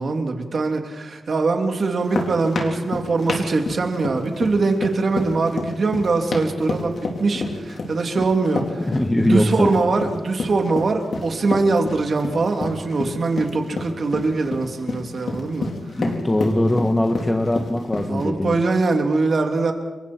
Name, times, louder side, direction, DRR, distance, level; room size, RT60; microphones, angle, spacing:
voice 1, 0.0-8.9 9.2-15.7 18.1-19.7, right 3 dB, 55° right, 3 dB, 3.4 m, -22 dB
sound 1, 1.8-18.2, left 3 dB, 60° left, 4.3 m, -29 dB
voice 2, 8.8-9.7 15.9-18.6, left 1 dB, 15° left, 4 dB, 1.6 m, -21 dB
30.0 x 24.0 x 4.7 m, 1.2 s
wide cardioid pair, 100°, 0 cm